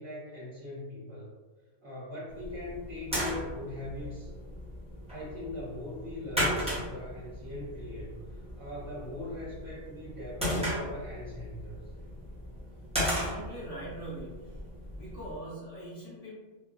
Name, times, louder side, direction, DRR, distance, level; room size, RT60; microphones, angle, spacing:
voice 1, 0.0-1.3 1.8-4.3 5.1-11.8, left 1 dB, 65° right, -11 dB, 1.1 m, -41 dB
sound 1, 2.3-15.4, equal, 5° right, 0.6 m, -36 dB
voice 2, 13.1-14.6 14.9-16.3, right 1 dB, 35° left, -9 dB, 0.9 m, -42 dB
3.0 x 2.0 x 2.3 m, 1.3 s
omnidirectional pair, 1.2 m